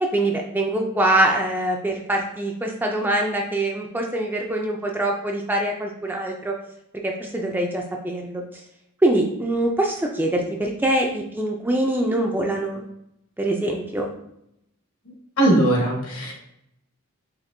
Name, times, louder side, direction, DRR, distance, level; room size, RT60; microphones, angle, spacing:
voice 1, 0.0-6.5 7.0-8.4 9.0-12.8 13.4-14.1, right 1 dB, 10° right, 1 dB, 0.4 m, -24 dB
voice 2, 15.4-16.3, right 1 dB, 75° left, 0 dB, 1.2 m, -19 dB
4.2 x 2.6 x 2.6 m, 0.79 s
head